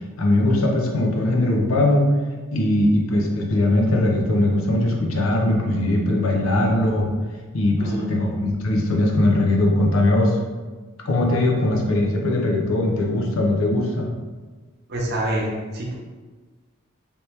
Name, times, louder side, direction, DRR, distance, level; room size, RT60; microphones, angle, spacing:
voice 1, 0.2-2.1 2.5-7.1 7.5-10.4 11.0-14.1, left 1 dB, 80° left, 1 dB, 0.6 m, -20 dB
voice 2, 7.8-8.2 14.9-15.9, right 1 dB, 50° right, -3 dB, 0.7 m, -26 dB
3.4 x 2.9 x 3.1 m, 1.3 s
head